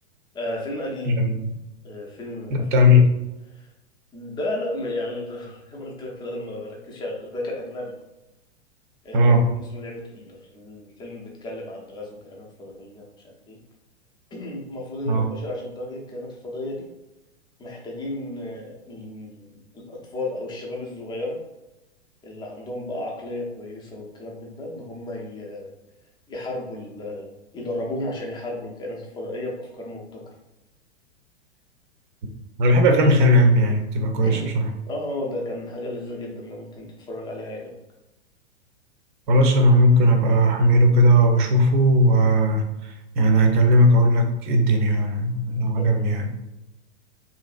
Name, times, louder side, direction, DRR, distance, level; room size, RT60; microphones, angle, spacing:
voice 1, 0.3-1.2 1.8-2.9 3.5-3.7 4.1-7.9 9.0-13.1 13.5-13.6 14.3-16.9 17.6-21.4 22.2-25.7 26.3-30.3 34.2-34.5 34.9-37.7 45.8-46.3, left 1 dB, 15° left, -2 dB, 0.6 m, -33 dB
voice 2, 1.1-1.5 2.7-3.0 9.1-9.4 15.1-15.3 32.6-34.7 39.3-42.7 43.2-46.3, equal, 45° right, 4 dB, 0.6 m, -17 dB
3.0 x 2.6 x 2.4 m, 0.96 s
figure-of-eight pair, 100°, 34 cm